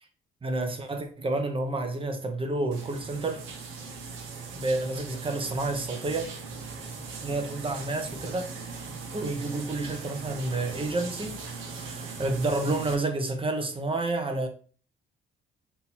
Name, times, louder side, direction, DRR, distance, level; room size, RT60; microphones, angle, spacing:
voice 1, 0.4-3.4 4.5-6.3 7.2-8.5 9.1-14.5, right 2 dB, 25° right, 0.9 m, -30 dB
sound 1, 2.7-12.9, right 4 dB, 80° right, 1.0 m, -39 dB
3.7 x 2.8 x 4.3 m
cardioid pair, 90°, 20 cm